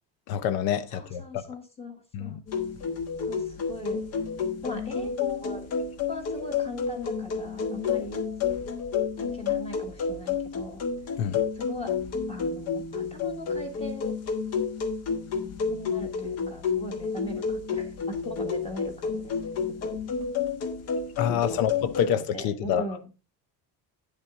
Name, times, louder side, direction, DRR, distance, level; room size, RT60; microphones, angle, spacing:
voice 1, 0.3-1.4 2.1-2.4 11.2-11.4 21.2-22.8, left 9 dB, 80° left, 1.0 m, -27 dB
voice 2, 0.9-2.4 3.2-4.0 4.6-5.7 6.1-8.2 9.2-10.8 11.5-12.0 12.3-14.1 15.7-19.3 19.8-20.0 21.3-21.6 22.0-23.1, left 1 dB, 15° left, 1.5 m, -39 dB
sound 1, 2.5-22.1, left 6 dB, 40° left, 1.3 m, -30 dB
9.1 x 7.5 x 3.7 m
cardioid pair, 165°, 36 cm